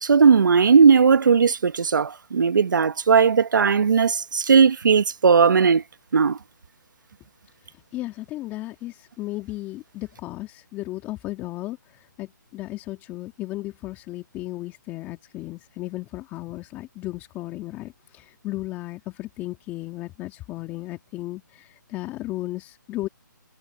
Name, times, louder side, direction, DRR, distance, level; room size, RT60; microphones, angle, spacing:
voice 1, 0.0-5.8 6.1-6.4, right 6 dB, 70° right, 1.5 m, -17 dB
voice 2, 7.9-23.1, left 17 dB, 15° left, 2.1 m, -35 dB
hypercardioid pair, 155°, 11 cm